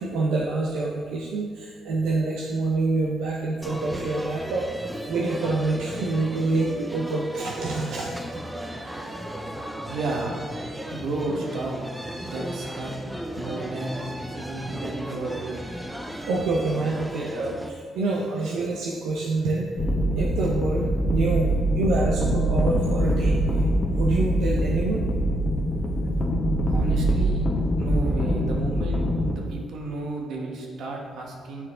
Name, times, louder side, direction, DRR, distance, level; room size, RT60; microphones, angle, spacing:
voice 1, 0.0-8.1 16.3-19.7 20.2-21.5 21.7-23.4 24.0-25.0, right 3 dB, 90° right, -3 dB, 0.6 m, -26 dB
sound 1, 3.6-17.7, right 1 dB, 5° right, 0.5 m, -35 dB
voice 2, 9.8-10.4 10.9-11.8 12.2-12.9 13.4-15.5 26.6-27.5 27.8-29.1 29.4-31.7, right 2 dB, 70° right, 0 dB, 1.2 m, -32 dB
sound 2, 19.8-29.4, right 1 dB, 35° left, 0.8 m, -23 dB
8.7 x 4.6 x 3.7 m, 2.1 s
cardioid pair, 90°, 0 cm